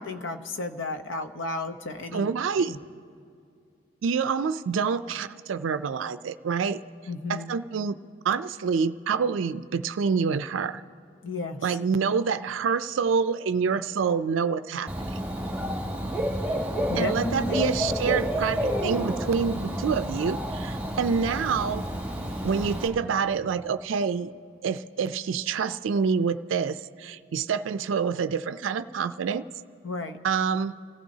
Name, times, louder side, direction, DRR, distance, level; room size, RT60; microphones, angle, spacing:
voice 1, 0.0-2.3 2.5-2.8 7.1-7.5 11.2-11.8 16.9-17.8 29.8-30.2, left 2 dB, 80° left, 7 dB, 0.9 m, -33 dB
voice 2, 2.1-2.8 4.0-6.8 7.3-8.0 8.2-10.8 11.6-15.3 16.9-21.8 22.4-24.3 24.6-29.4 30.2-30.8, right 6 dB, 80° right, 12 dB, 0.4 m, -27 dB
Dog / Bird, 14.9-22.9, equal, 5° right, 1.5 m, -30 dB
28.5 x 14.5 x 2.8 m, 2.4 s
head